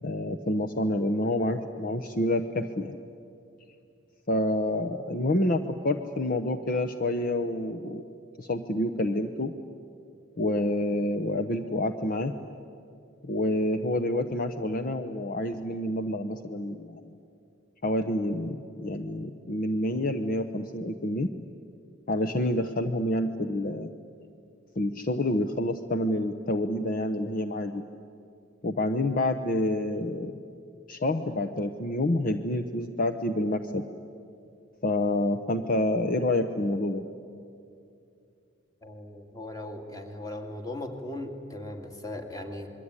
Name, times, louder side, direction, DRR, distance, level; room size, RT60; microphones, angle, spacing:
voice 1, 0.0-3.0 4.3-8.0 8.4-9.5 10.4-12.3 13.2-17.0 17.8-21.3 22.1-23.9 24.8-27.8 28.6-30.4 30.9-33.9 34.8-37.1, left 1 dB, 45° left, 7 dB, 0.9 m, -28 dB
voice 2, 38.8-42.7, left 1 dB, 20° left, 5 dB, 2.5 m, -38 dB
27.0 x 22.0 x 9.8 m, 2.5 s
head